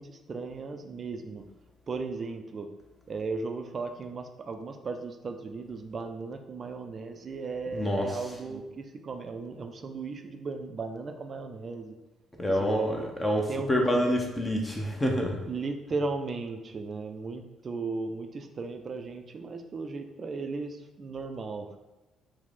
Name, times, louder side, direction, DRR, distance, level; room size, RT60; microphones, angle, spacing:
voice 1, 0.0-1.5 1.9-2.7 3.1-12.0 12.5-13.1 13.5-14.1 15.4-21.8, right 4 dB, 40° right, 6 dB, 0.3 m, -36 dB
voice 2, 7.7-8.2 12.4-15.4, equal, 20° left, 1 dB, 0.6 m, -27 dB
4.6 x 2.1 x 3.6 m, 1.1 s
figure-of-eight pair, 45°, 0 cm